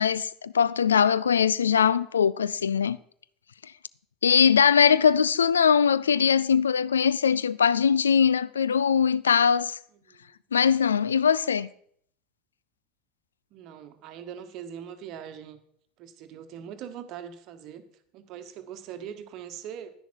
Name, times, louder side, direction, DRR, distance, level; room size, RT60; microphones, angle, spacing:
voice 1, 0.0-3.0 4.2-9.7 10.5-11.7, left 7 dB, 75° left, 0.3 m, -21 dB
voice 2, 13.5-15.6 16.0-17.8 18.1-19.9, right 9 dB, 50° right, 1.2 m, -41 dB
10.5 x 10.5 x 4.5 m
figure-of-eight pair, 75°, 0 cm